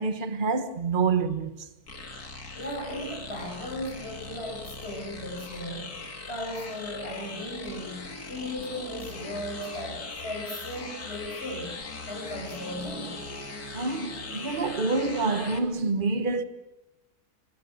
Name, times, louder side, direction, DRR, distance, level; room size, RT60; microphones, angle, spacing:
voice 1, 0.0-1.5 13.7-16.4, right 4 dB, 35° right, 1.5 m, -27 dB
sound 1, 1.9-15.6, left 3 dB, 70° left, 2.9 m, -40 dB
voice 2, 2.6-5.9 6.3-11.7 12.1-13.2, left 1 dB, 40° left, 7.7 m, -36 dB
28.5 x 23.5 x 8.2 m
omnidirectional pair, 1.7 m